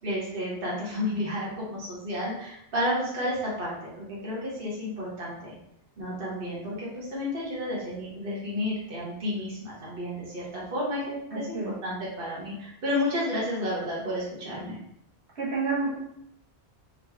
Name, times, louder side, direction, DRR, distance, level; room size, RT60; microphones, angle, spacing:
voice 1, 0.0-5.5 6.0-14.8, left 1 dB, 55° right, -6 dB, 1.4 m, -31 dB
voice 2, 11.3-11.7 15.4-16.0, right 3 dB, 70° right, -7 dB, 1.5 m, -29 dB
3.8 x 3.2 x 3.5 m, 0.76 s
omnidirectional pair, 1.1 m